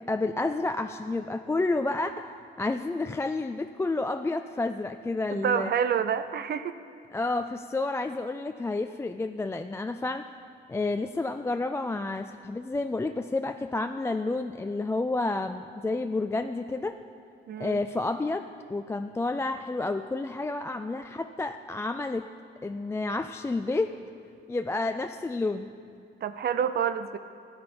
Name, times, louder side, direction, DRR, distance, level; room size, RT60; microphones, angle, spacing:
voice 1, 0.0-5.7 7.1-10.3 10.7-17.0 17.6-22.3 22.6-24.0 24.5-25.7, left 2 dB, 15° left, 8 dB, 0.3 m, -30 dB
voice 2, 5.3-6.8 17.5-17.8 26.2-27.2, right 8 dB, 55° right, 11 dB, 0.5 m, -28 dB
13.0 x 8.9 x 5.2 m, 2.4 s
cardioid pair, 90°, 20 cm